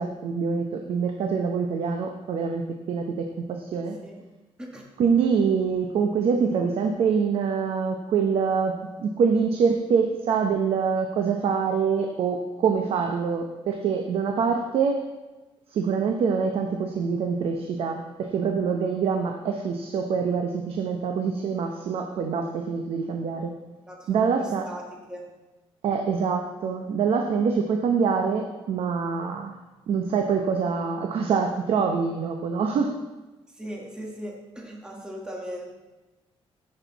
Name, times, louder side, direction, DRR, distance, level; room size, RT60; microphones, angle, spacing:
voice 1, 0.0-4.0 5.0-15.0 15.7-23.5 24.1-24.6 25.8-29.6 29.9-33.0, right 5 dB, 65° right, 4 dB, 0.9 m, -25 dB
voice 2, 23.9-25.3 33.5-35.8, equal, 5° right, -1 dB, 1.5 m, -38 dB
15.0 x 6.7 x 4.1 m, 1.1 s
cardioid pair, 150°, 11 cm